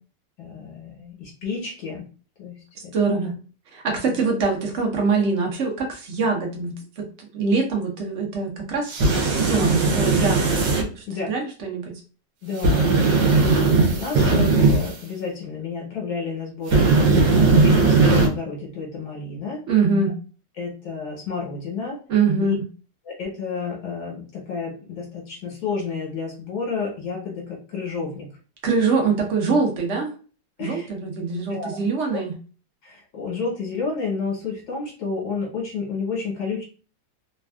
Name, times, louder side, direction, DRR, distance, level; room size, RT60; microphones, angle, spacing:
voice 1, 0.4-2.1 2.4-2.6 2.8-2.9 3.2-3.3 4.0-4.2 11.1-11.3 12.4-16.9 17.3-19.6 20.6-22.0 22.4-22.6 23.0-28.3 30.6-30.9 31.5-31.8 32.1-32.2 32.8-36.6, left 5 dB, 65° left, -2 dB, 1.5 m, -31 dB
voice 2, 2.9-3.3 3.7-9.0 9.2-10.5 10.8-12.0 19.7-20.1 22.1-22.6 28.6-30.1 30.6-32.3, right 4 dB, 55° right, 1 dB, 0.9 m, -24 dB
sound 1, 8.9-10.8 12.6-14.9 16.7-18.3, right 3 dB, 80° right, 1.3 m, -18 dB
3.3 x 2.3 x 2.3 m, 0.38 s
omnidirectional pair, 1.9 m